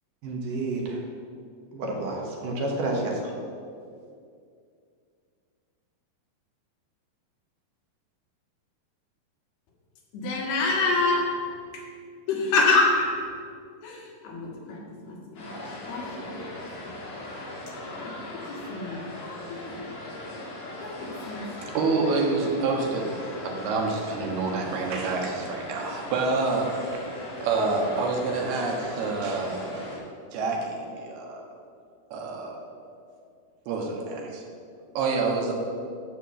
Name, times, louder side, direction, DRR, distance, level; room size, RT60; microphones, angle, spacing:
voice 1, 0.2-1.0 1.7-3.3, right 2 dB, 65° right, -1 dB, 2.6 m, -29 dB
voice 2, 10.1-11.3 11.7-11.9 12.3-13.2 13.8-16.5 16.8-17.0 18.0-18.1 18.5-19.0 19.5-20.0 20.8-21.8, left 3 dB, 80° left, -1 dB, 3.6 m, -27 dB
sound 1, 15.3-30.0, left 1 dB, 50° left, 3.8 m, -39 dB
voice 3, 21.5-23.1 23.4-26.8 27.4-29.9 30.3-31.4 32.1-32.6 33.7-34.4 35.0-35.5, right 3 dB, 90° right, 0 dB, 3.4 m, -27 dB
12.5 x 4.5 x 7.5 m, 2.3 s
omnidirectional pair, 4.4 m